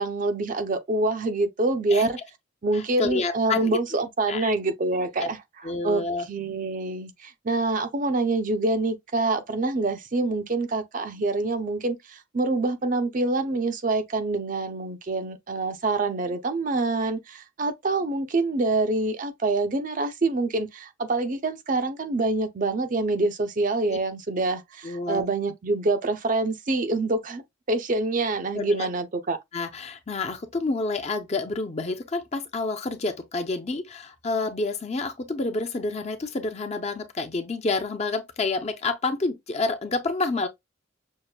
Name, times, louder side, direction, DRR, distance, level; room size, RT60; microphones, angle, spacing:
voice 1, 0.0-2.2 2.6-5.4 5.8-6.0 6.3-27.4 27.7-29.4, right 2 dB, 40° right, 0.5 m, -26 dB
voice 2, 2.7-3.7 4.3-4.5 5.2-5.3 5.6-6.3 23.9-24.0 24.8-25.2 28.5-28.9 29.5-40.5, left 3 dB, 30° left, 0.6 m, -29 dB
6.3 x 2.5 x 2.2 m
head